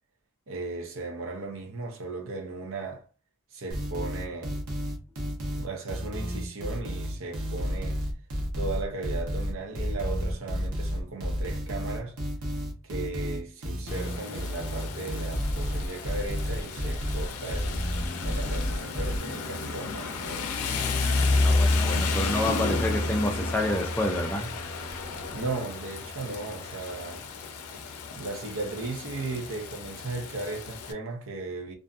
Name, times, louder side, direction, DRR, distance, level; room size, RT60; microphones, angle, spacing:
voice 1, 0.5-3.1 3.5-4.6 5.5-8.0 8.5-12.2 12.8-17.9 18.2-20.7 25.3-27.2 28.1-31.7, right 3 dB, 60° right, 0.7 m, -36 dB
sound 1, 3.7-19.2, equal, 90° right, 0.9 m, -31 dB
Rain, 13.9-30.9, left 3 dB, 85° left, 0.5 m, -31 dB
Mechanisms, 19.3-25.6, left 1 dB, 35° left, 0.9 m, -49 dB
voice 2, 21.3-24.5, left 1 dB, 10° left, 0.3 m, -28 dB
2.5 x 2.5 x 2.3 m
head